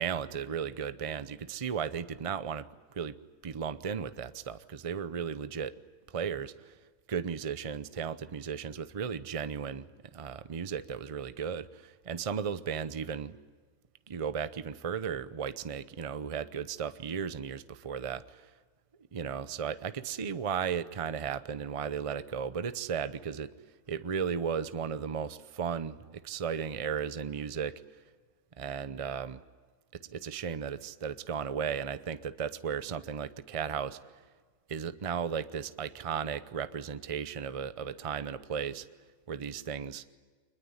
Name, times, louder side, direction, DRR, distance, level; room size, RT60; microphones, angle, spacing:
voice 1, 0.0-3.2 3.4-5.7 6.1-6.7 7.1-9.9 10.1-13.3 14.1-18.2 19.1-23.5 23.9-27.8 28.6-29.4 29.9-34.0 34.7-38.9 39.3-40.0, right 7 dB, 30° right, 13 dB, 0.7 m, -35 dB
24.5 x 21.0 x 9.7 m, 1.5 s
omnidirectional pair, 1.5 m